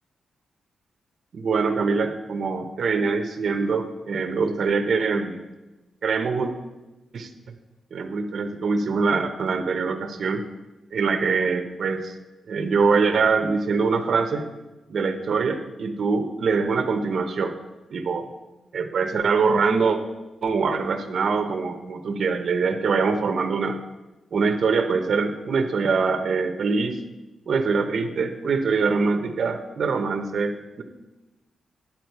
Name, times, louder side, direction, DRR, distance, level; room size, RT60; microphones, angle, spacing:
voice 1, 1.3-5.4 6.0-6.5 7.1-7.3 7.9-10.4 10.9-12.1 12.5-14.5 14.9-17.5 17.9-18.3 18.7-20.0 20.4-23.8 24.3-27.0 27.5-30.8, right 4 dB, 50° right, 5 dB, 0.7 m, -23 dB
9.4 x 7.3 x 4.5 m, 1.1 s
wide cardioid pair, 175°, 0 cm